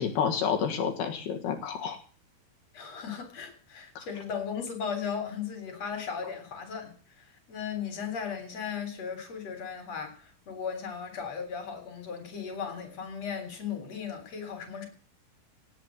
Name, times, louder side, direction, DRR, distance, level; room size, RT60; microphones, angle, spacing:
voice 1, 0.0-2.0 4.0-4.1, left 7 dB, 65° left, 3 dB, 3.2 m, -29 dB
voice 2, 2.7-6.9 7.2-14.9, left 6 dB, 35° left, 6 dB, 4.2 m, -36 dB
18.0 x 7.4 x 7.8 m, 0.42 s
omnidirectional pair, 5.4 m